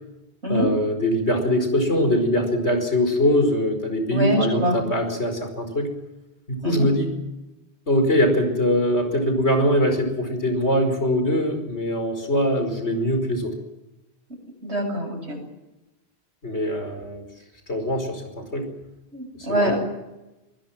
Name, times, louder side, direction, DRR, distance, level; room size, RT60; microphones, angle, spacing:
voice 1, 0.5-5.9 6.5-7.1 7.9-13.5 16.4-17.2 17.7-18.7 19.5-19.7, equal, 80° left, 6 dB, 5.4 m, -22 dB
voice 2, 4.1-4.8 6.6-6.9 14.6-15.4 19.1-19.8, equal, 80° right, 3 dB, 8.0 m, -24 dB
24.0 x 21.0 x 7.4 m, 1.0 s
omnidirectional pair, 1.1 m